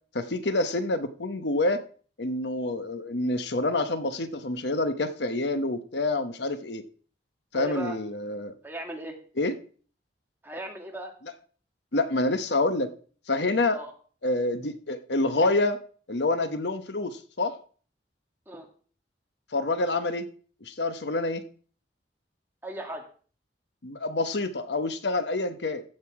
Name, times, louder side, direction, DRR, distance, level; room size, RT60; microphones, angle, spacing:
voice 1, 0.1-1.8 2.2-6.8 7.5-8.5 9.4-9.6 11.9-12.9 13.3-13.8 14.2-15.8 16.1-17.6 19.5-20.3 20.6-21.4 23.8-25.8, left 2 dB, 75° left, 10 dB, 1.0 m, -27 dB
voice 2, 7.5-8.0 8.6-9.1 10.4-11.1 13.7-13.9 18.5-18.7 22.6-23.1, right 1 dB, 10° right, 2 dB, 1.9 m, -36 dB
15.0 x 6.6 x 4.8 m, 0.43 s
head